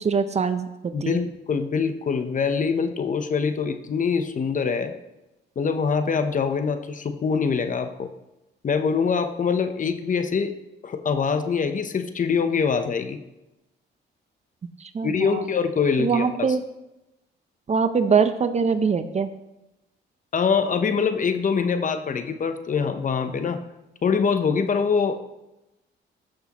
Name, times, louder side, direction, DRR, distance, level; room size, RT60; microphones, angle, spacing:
voice 1, 0.0-1.2 14.8-15.5 16.0-16.6 17.7-19.3, right 5 dB, 35° right, 10 dB, 0.6 m, -23 dB
voice 2, 0.9-4.9 5.6-8.1 8.6-10.5 10.8-13.2 15.0-16.5 20.3-23.6 24.0-25.2, left 5 dB, 40° left, 8 dB, 0.8 m, -24 dB
14.0 x 6.2 x 3.0 m, 0.95 s
cardioid pair, 90°, 20 cm